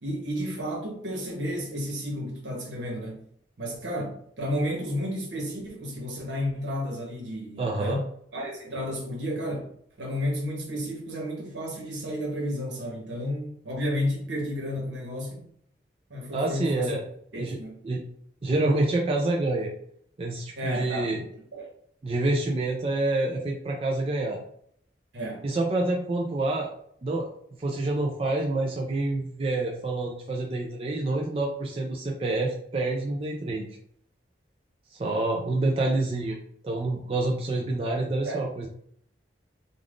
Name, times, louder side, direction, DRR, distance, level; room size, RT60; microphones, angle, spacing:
voice 1, 0.0-3.2 3.6-9.7 10.0-15.5 16.1-17.0 17.3-17.8 20.6-21.3 21.5-21.7 25.1-25.4 38.2-38.5, equal, 80° right, 1.0 m, -32 dB
voice 2, 7.6-8.0 16.3-17.0 17.3-17.6 17.8-18.0 18.4-19.7 20.2-21.2 22.0-24.4 25.4-26.7 27.0-33.7 34.9-36.4 36.6-38.7, right 2 dB, 30° right, 0.3 m, -27 dB
3.5 x 2.4 x 2.4 m
head